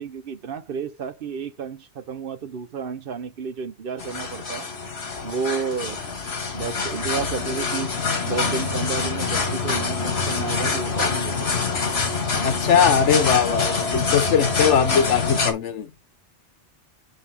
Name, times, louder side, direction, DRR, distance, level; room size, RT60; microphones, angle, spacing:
voice 1, 0.0-4.7 5.2-6.0 6.5-7.9 8.3-11.3, right 6 dB, 55° right, 0.9 m, -31 dB
sound 1, 4.0-15.5, left 4 dB, 65° left, 1.8 m, -25 dB
voice 2, 12.4-15.9, left 7 dB, 90° left, 1.3 m, -20 dB
6.8 x 5.3 x 3.4 m
omnidirectional pair, 1.2 m